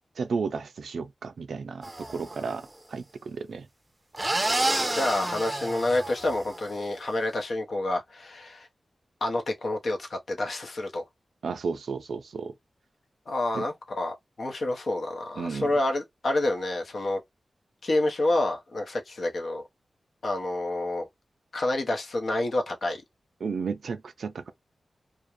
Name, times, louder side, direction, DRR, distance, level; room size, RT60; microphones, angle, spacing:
voice 1, 0.2-3.7 11.4-12.5 13.5-13.6 15.4-15.7 23.4-24.5, right 5 dB, 80° right, 0.3 m, -33 dB
sound 1, 1.8-2.5 4.1-6.8, right 1 dB, 15° right, 0.5 m, -30 dB
voice 2, 4.9-8.7 9.2-11.0 13.3-17.2 17.8-19.6 20.2-21.1 21.5-23.0, left 2 dB, 65° left, 0.6 m, -28 dB
2.4 x 2.1 x 2.9 m
wide cardioid pair, 85°, 0 cm